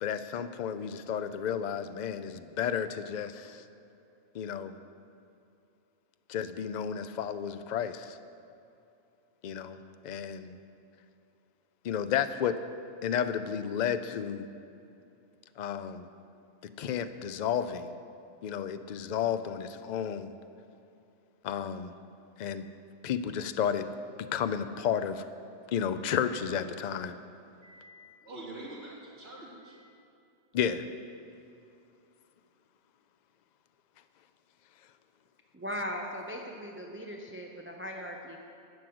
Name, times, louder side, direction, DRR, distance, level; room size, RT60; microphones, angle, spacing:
voice 1, 0.0-3.6 4.3-4.8 6.3-8.2 9.4-10.5 11.8-12.6 13.0-14.5 15.6-16.1 16.6-18.0 18.4-20.3 21.4-21.9 22.4-22.7 23.0-23.9 24.2-25.2 25.7-27.2 30.5-30.8, left 8 dB, 60° left, 11 dB, 0.5 m, -32 dB
voice 2, 27.6-29.8, right 1 dB, 65° right, -6 dB, 3.0 m, -46 dB
voice 3, 35.5-38.4, equal, 15° right, 1 dB, 0.6 m, -38 dB
11.5 x 6.3 x 7.7 m, 2.6 s
omnidirectional pair, 1.2 m